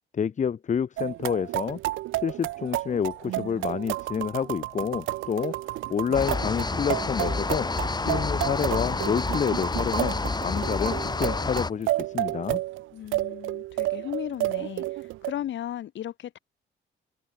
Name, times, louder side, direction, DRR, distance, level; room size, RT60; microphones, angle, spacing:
voice 1, 0.1-1.8 2.2-5.5 5.9-7.7 8.0-12.6, left 7 dB, 40° left, 0.8 m, -28 dB
sound 1, 1.0-15.3, right 16 dB, 80° right, 0.6 m, -31 dB
sound 2, 2.1-9.1, right 5 dB, 35° right, 5.6 m, -54 dB
sound 3, 6.1-11.7, left 3 dB, 20° left, 1.6 m, -29 dB
voice 2, 12.9-16.4, left 11 dB, 70° left, 2.1 m, -36 dB
open air
cardioid pair, 90°, 20 cm